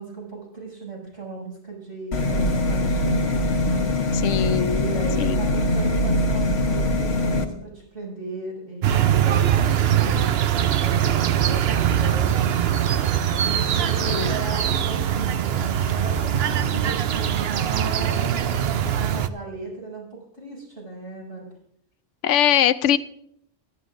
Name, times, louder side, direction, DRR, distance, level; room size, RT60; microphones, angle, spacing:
voice 1, 0.0-3.6 4.7-12.4 13.4-21.5, right 3 dB, 80° right, -4 dB, 7.1 m, -36 dB
sound 1, 2.1-7.4, left 1 dB, 60° left, 1.5 m, -22 dB
voice 2, 4.1-4.8 5.2-5.4 14.1-14.3 22.2-23.0, left 10 dB, 80° left, 14 dB, 0.9 m, -21 dB
sound 2, 8.8-19.3, right 9 dB, 60° right, 0.8 m, -22 dB
24.0 x 11.0 x 2.6 m, 0.70 s
omnidirectional pair, 1.2 m